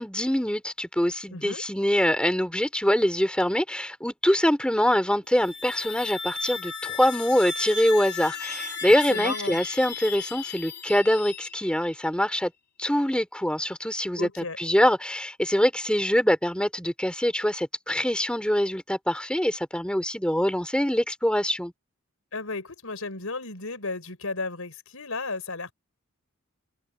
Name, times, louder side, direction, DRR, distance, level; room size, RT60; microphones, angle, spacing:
voice 1, 0.0-12.5 12.8-14.3 14.6-21.7, equal, 5° left, 2.9 m, -24 dB
voice 2, 1.3-1.6 9.1-9.6 14.1-14.6 22.3-25.7, left 3 dB, 80° left, 4.5 m, -34 dB
sound 1, 5.2-11.9, left 5 dB, 50° left, 2.5 m, -35 dB
open air
head